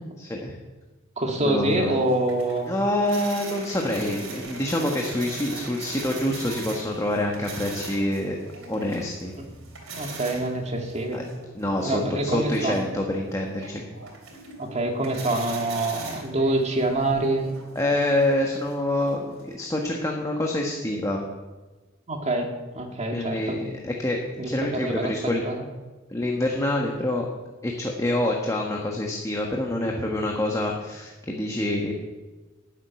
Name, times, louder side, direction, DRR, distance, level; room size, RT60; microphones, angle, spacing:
voice 1, 0.2-0.6 1.4-2.0 2.7-8.4 8.7-9.3 11.1-11.2 11.5-13.9 17.7-21.2 23.1-24.2 24.5-25.4 26.1-27.3 27.6-31.9, left 1 dB, 15° left, 0 dB, 1.2 m, -26 dB
voice 2, 1.2-2.7 9.9-11.2 11.8-12.8 14.6-17.5 22.1-23.6 24.4-25.6, right 2 dB, 35° right, 3 dB, 2.0 m, -26 dB
sound 1, 1.6-19.5, right 3 dB, 70° right, 3.3 m, -41 dB
12.5 x 7.5 x 9.3 m, 1.2 s
head